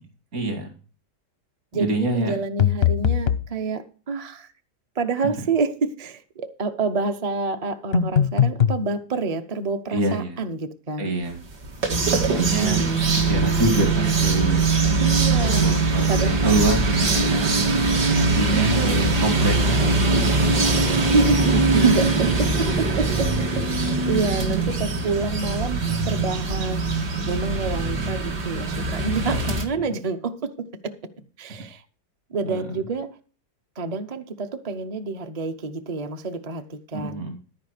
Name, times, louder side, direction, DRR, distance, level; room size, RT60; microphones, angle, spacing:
voice 1, 0.3-0.7 1.7-2.3 9.9-10.4 11.0-11.4 12.2-12.8 13.2-14.6 15.4-17.6 18.1-20.7 29.2-29.4 32.5-32.6 36.9-37.4, right 2 dB, 55° right, 2.4 m, -25 dB
voice 2, 1.7-4.5 5.0-11.1 12.3-13.0 15.0-15.7 16.1-16.5 18.5-19.1 21.0-26.8 27.3-31.0 31.4-31.8 32.3-33.2 33.8-37.2, right 4 dB, 40° right, 0.5 m, -27 dB
sound 1, 2.6-3.5 7.9-8.8, left 8 dB, 55° left, 0.7 m, -20 dB
sound 2, 11.5-29.7, right 3 dB, 75° right, 2.4 m, -22 dB
14.0 x 4.9 x 6.5 m
omnidirectional pair, 1.8 m